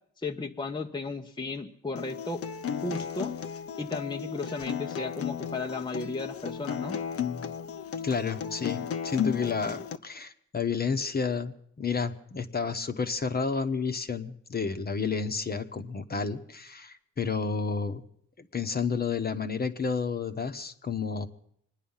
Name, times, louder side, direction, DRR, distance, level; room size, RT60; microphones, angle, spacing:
voice 1, 0.2-2.4 2.8-3.3 3.8-7.0, left 3 dB, 15° left, 3 dB, 0.9 m, -34 dB
Acoustic guitar, 2.0-10.0, left 8 dB, 50° left, 0.8 m, -34 dB
voice 2, 8.0-18.0 18.4-21.3, left 5 dB, 30° left, 8 dB, 1.2 m, -31 dB
25.0 x 10.0 x 5.7 m, 0.67 s
cardioid pair, 90°, 30 cm